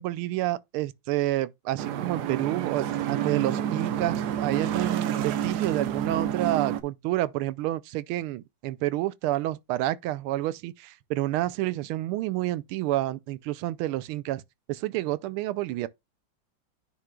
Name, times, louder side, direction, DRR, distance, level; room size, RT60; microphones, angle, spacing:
voice 1, 0.0-14.4 14.7-15.9, right 15 dB, 85° right, 1.4 m, -29 dB
sound 1, 1.8-6.8, right 9 dB, 65° right, 1.1 m, -29 dB
9.6 x 5.8 x 2.3 m
omnidirectional pair, 2.3 m